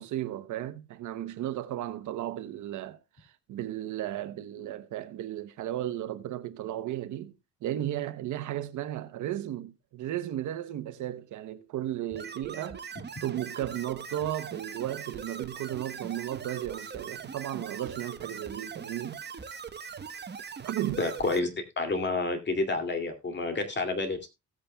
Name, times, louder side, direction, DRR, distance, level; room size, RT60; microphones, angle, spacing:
voice 1, 0.0-7.3 7.6-12.8 13.2-19.2 20.6-21.1, right 12 dB, 75° right, 0.9 m, -35 dB
sound 1, 12.1-21.4, right 6 dB, 35° right, 1.1 m, -41 dB
voice 2, 21.0-21.5 21.8-24.3, left 3 dB, 35° left, 2.5 m, -29 dB
17.0 x 8.5 x 2.2 m
cardioid pair, 90°, 30 cm